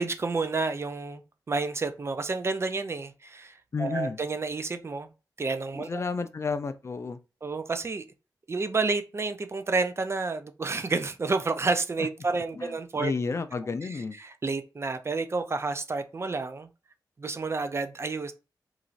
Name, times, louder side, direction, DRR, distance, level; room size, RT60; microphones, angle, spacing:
voice 1, 0.0-5.1 5.4-6.0 7.4-8.0 8.5-13.1 13.8-16.7 17.2-18.3, right 3 dB, 35° right, 0.4 m, -30 dB
voice 2, 3.7-4.2 5.7-7.2 12.6-12.7 13.0-14.1, left 4 dB, 40° left, 0.3 m, -31 dB
3.0 x 2.5 x 2.5 m
wide cardioid pair, 85°, 7 cm